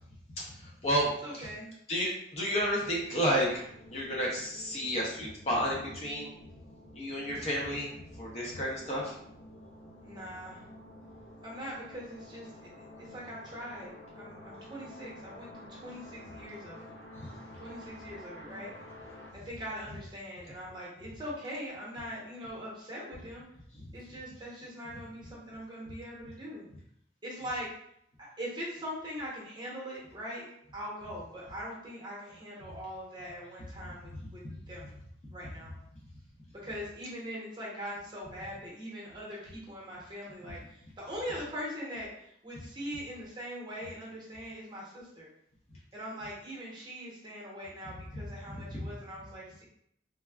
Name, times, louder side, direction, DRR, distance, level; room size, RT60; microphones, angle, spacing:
voice 1, 0.4-1.5 1.9-3.6 3.9-6.3 6.9-9.1 23.8-23.9 34.5-34.6 48.5-48.9, equal, 35° left, -3 dB, 0.6 m, -31 dB
voice 2, 1.2-1.7 10.0-10.6 11.4-16.9 17.6-18.7 19.3-23.4 23.9-26.7 27.2-27.7 28.2-30.4 30.7-34.4 34.7-34.9 35.3-35.7 36.5-45.3 45.9-49.6, equal, 25° right, -5 dB, 0.9 m, -42 dB
sound 1, 3.0-19.3, left 1 dB, 80° left, 0.5 m, -50 dB
3.3 x 2.2 x 2.3 m, 0.73 s
head